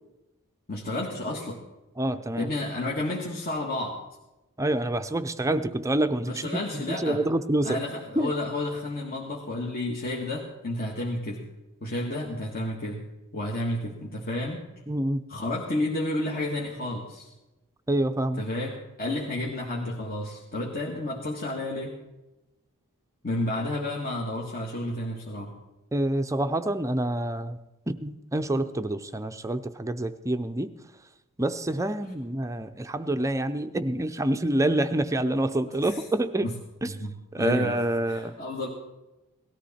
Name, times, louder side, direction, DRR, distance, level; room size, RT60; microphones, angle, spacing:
voice 1, 0.7-1.6 2.4-4.0 6.2-7.2 7.6-11.4 11.8-13.0 13.3-14.6 15.3-17.3 18.4-21.9 23.2-25.5 35.8-36.0 36.4-36.5 36.8-37.1 37.4-37.8 38.0-38.7, left 1 dB, 45° left, -2 dB, 1.7 m, -31 dB
voice 2, 2.0-2.5 4.6-6.5 7.0-7.8 8.2-8.3 14.9-15.2 17.9-18.4 25.9-27.6 27.9-30.7 31.4-36.5 36.8-36.9 37.3-38.3, right 1 dB, 15° right, 9 dB, 0.5 m, -27 dB
18.0 x 13.5 x 4.3 m, 1.0 s
head